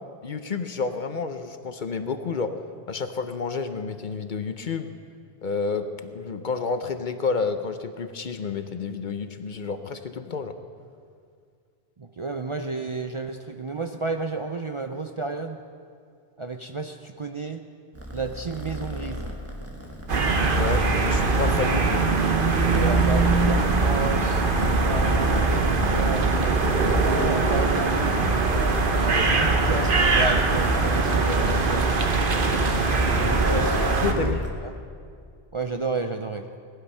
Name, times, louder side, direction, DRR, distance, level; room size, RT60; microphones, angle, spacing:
voice 1, 0.2-2.5 2.9-4.9 5.4-10.5 20.5-22.1 34.0-34.4, left 5 dB, 50° left, 9 dB, 0.8 m, -30 dB
voice 2, 12.0-15.6 16.4-17.6 18.1-19.3 22.6-24.5 24.8-26.3 27.0-28.3 28.9-31.9 33.1-34.4 34.6-34.7 35.5-36.5, right 3 dB, 40° right, 5 dB, 0.5 m, -32 dB
Purr, 17.9-34.5, equal, 15° right, 1.5 m, -31 dB
sound 1, 20.1-34.1, right 3 dB, 55° right, 1.2 m, -22 dB
18.5 x 12.0 x 5.5 m, 2.3 s
omnidirectional pair, 1.1 m